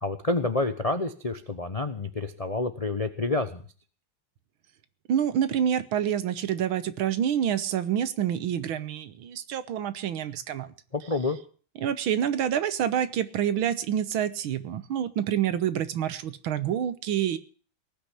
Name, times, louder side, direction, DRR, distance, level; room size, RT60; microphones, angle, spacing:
voice 1, 0.0-3.6 10.9-11.4, left 2 dB, 70° left, 8 dB, 0.3 m, -28 dB
voice 2, 5.1-10.7 11.8-17.4, right 9 dB, 70° right, 13 dB, 1.7 m, -27 dB
18.5 x 6.4 x 9.9 m, 0.42 s
omnidirectional pair, 2.4 m